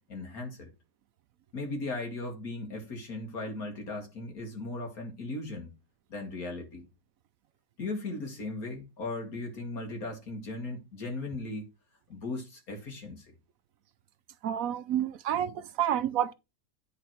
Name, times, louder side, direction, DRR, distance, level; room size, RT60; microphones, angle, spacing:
voice 1, 0.1-0.7 1.5-5.7 6.1-6.9 7.8-11.7 12.1-13.3, left 2 dB, 65° left, 2.1 m, -37 dB
voice 2, 14.4-16.3, right 10 dB, 70° right, 0.9 m, -29 dB
10.0 x 4.0 x 4.4 m
omnidirectional pair, 1.7 m